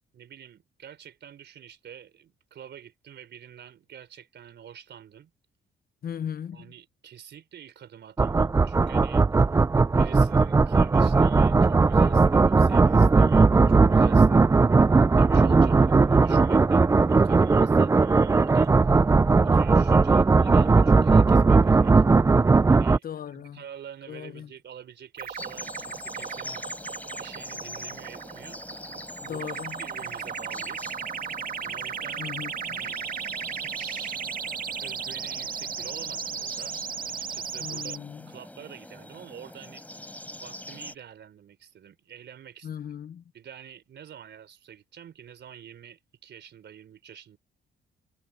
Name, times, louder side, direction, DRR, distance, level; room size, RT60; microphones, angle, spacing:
voice 1, 0.1-5.3 6.5-9.3 10.0-14.5 15.2-18.7 19.4-22.0 22.7-23.1 23.3-26.7 27.2-28.8 29.3-31.0 31.6-32.3 32.6-33.0 33.5-34.3 34.8-36.8 37.1-38.0 38.3-40.1 40.4-42.7 43.3-47.4, right 9 dB, 60° right, 4.1 m, -47 dB
voice 2, 6.0-6.7 23.0-23.6 24.1-24.5 29.2-29.8 32.2-32.8 37.6-38.3 42.6-43.2, left 9 dB, 50° left, 0.7 m, -37 dB
sound 1, 8.2-23.0, right 4 dB, 15° right, 0.3 m, -18 dB
sound 2, 25.2-38.0, right 7 dB, 45° right, 1.8 m, -35 dB
sound 3, 25.4-41.0, left 1 dB, 5° left, 6.5 m, -43 dB
cardioid pair, 90°, 20 cm